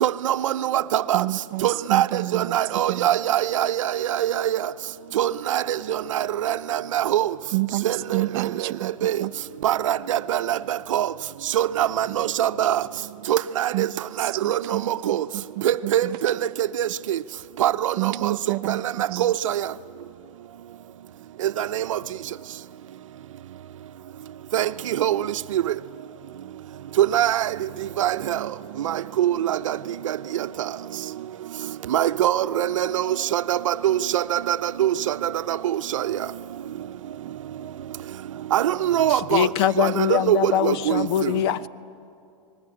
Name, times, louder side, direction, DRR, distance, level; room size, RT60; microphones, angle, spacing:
voice 1, 0.0-1.2 1.6-2.0 2.3-4.6 5.2-7.3 7.8-8.2 9.0-9.2 9.6-11.1 11.5-12.8 13.3-13.9 14.2-15.2 15.6-16.3 16.8-17.2 17.6-18.3 18.7-18.8 19.2-19.6 21.6-22.0 24.5-25.2 25.5-25.6 27.0-27.5 28.0-28.4 28.8-29.8 31.9-35.1 35.5-35.6 35.9-36.1 38.5-39.5 39.8-41.3, right 11 dB, 70° right, 0.8 m, -23 dB
voice 2, 1.1-2.6 2.9-3.1 7.5-7.9 8.1-8.9 9.2-9.3 13.7-14.0 14.4-16.2 18.0-18.8 19.1-19.3, right 19 dB, 45° right, 0.7 m, -29 dB
voice 3, 39.1-41.7, left 10 dB, 50° left, 0.9 m, -23 dB
29.5 x 20.5 x 9.8 m
hypercardioid pair, 140°, 17 cm